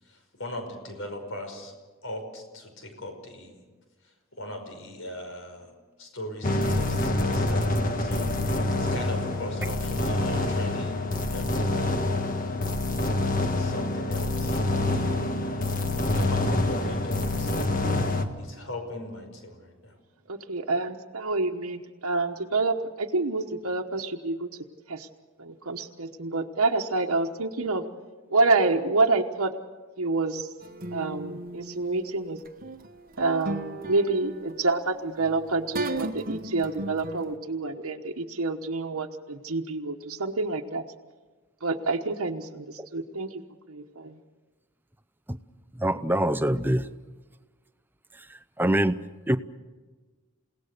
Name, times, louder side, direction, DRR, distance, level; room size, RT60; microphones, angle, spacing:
voice 1, 0.0-1.7 2.0-3.6 4.0-5.7 6.0-12.3 13.6-15.6 16.1-17.7 18.4-20.0, left 1 dB, 65° left, 5 dB, 5.4 m, -40 dB
sound 1, 6.4-18.3, left 2 dB, 40° left, 1.6 m, -26 dB
voice 2, 20.3-24.5 24.9-25.1 25.4-27.8 28.3-29.5 30.0-30.5 30.9-32.4 33.2-40.8 41.6-43.4 43.7-44.2, right 3 dB, 85° right, 2 dB, 1.2 m, -27 dB
sound 2, 30.6-37.4, right 2 dB, 40° right, 1.1 m, -37 dB
voice 3, 45.8-46.9 48.6-49.0 49.3-49.4, right 1 dB, 10° right, 11 dB, 0.6 m, -23 dB
29.5 x 18.0 x 6.7 m, 1.3 s
head